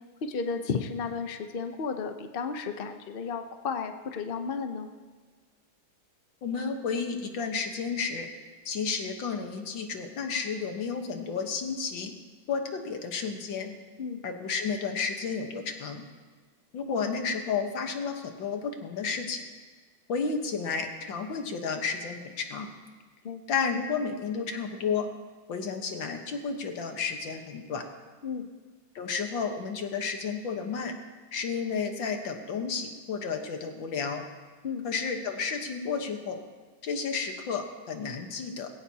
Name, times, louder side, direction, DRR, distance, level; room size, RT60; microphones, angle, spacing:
voice 1, 0.2-4.9 14.0-14.2 23.2-23.4 28.2-28.5 34.6-34.9, left 5 dB, 55° left, 7 dB, 0.6 m, -33 dB
voice 2, 6.4-8.3 8.7-12.1 12.5-13.7 14.2-16.0 16.7-19.4 20.1-22.7 23.5-25.1 25.5-27.8 29.0-30.9 31.3-34.2 34.8-36.4 36.8-38.7, left 5 dB, 70° left, 5 dB, 2.0 m, -32 dB
20.0 x 16.5 x 2.9 m, 1.4 s
omnidirectional pair, 2.1 m